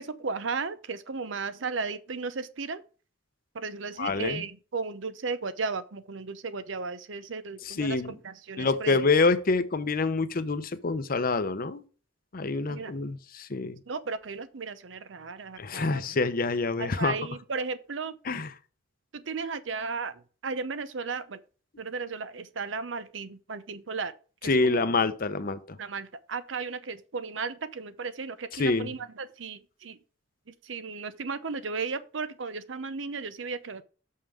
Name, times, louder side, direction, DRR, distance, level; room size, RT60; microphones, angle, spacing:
voice 1, 0.0-2.8 3.5-9.0 12.7-12.9 13.9-16.2 16.8-18.4 19.1-21.4 21.8-24.1 24.4-24.9 25.8-30.0 30.6-33.8, right 4 dB, 80° right, 0.7 m, -35 dB
voice 2, 4.0-4.4 7.6-8.1 8.6-11.8 12.3-13.8 15.6-17.2 18.2-18.5 24.4-25.8 28.6-28.9, left 3 dB, 50° left, 0.7 m, -26 dB
6.6 x 5.6 x 4.8 m
head